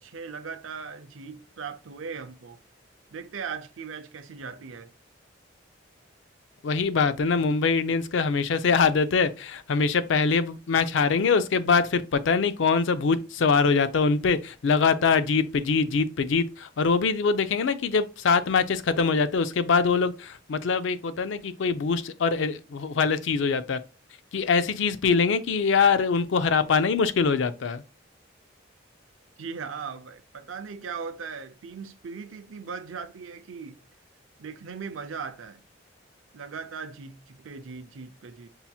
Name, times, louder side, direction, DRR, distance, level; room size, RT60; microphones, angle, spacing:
voice 1, 0.0-2.6 3.1-4.9 29.4-33.8 34.4-35.6 36.3-38.5, right 5 dB, 80° right, 0.5 m, -38 dB
voice 2, 6.6-23.8 24.3-27.8, left 5 dB, 70° left, 0.4 m, -23 dB
5.5 x 2.8 x 2.3 m
head